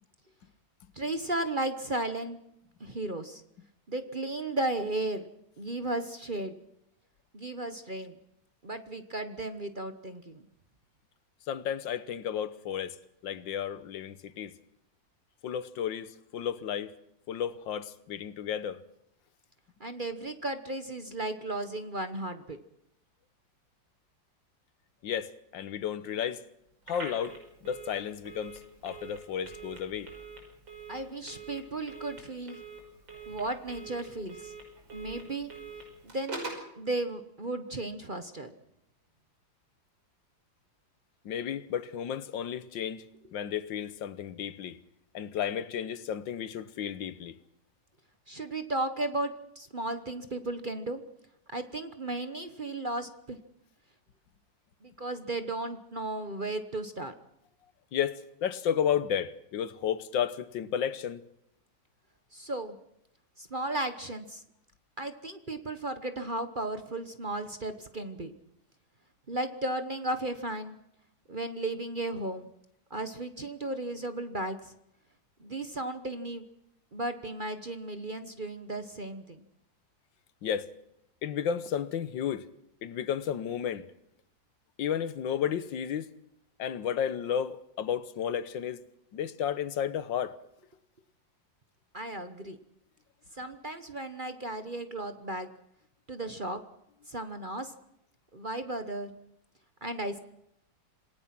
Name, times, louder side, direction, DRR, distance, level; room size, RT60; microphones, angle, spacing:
voice 1, 0.9-2.4 2.8-3.4 3.9-5.2 5.6-6.5 7.3-8.2 8.6-10.4 19.8-22.6 30.9-32.6 33.3-34.5 34.9-35.5 36.0-36.4 36.8-38.5 48.3-51.0 51.5-53.4 54.8-57.1 62.3-62.8 63.4-64.4 65.0-68.3 69.3-70.8 71.3-72.5 72.9-74.7 75.4-76.4 76.9-79.4 91.9-92.6 93.3-95.5 96.1-96.6 97.1-97.7 98.3-99.1 99.8-100.2, right 2 dB, 30° right, 1.1 m, -35 dB
voice 2, 11.5-12.9 13.2-14.5 15.4-16.9 17.3-18.8 25.0-26.4 26.9-27.4 27.6-30.1 41.2-43.0 43.3-44.8 45.1-47.4 57.9-61.2 80.4-80.7 81.2-82.5 82.8-83.8 84.8-86.1 86.6-88.8 89.1-90.4, left 8 dB, 75° left, 1.7 m, -32 dB
Telephone, 26.8-36.7, right 3 dB, 85° right, 6.4 m, -45 dB
27.0 x 18.5 x 6.0 m
omnidirectional pair, 2.0 m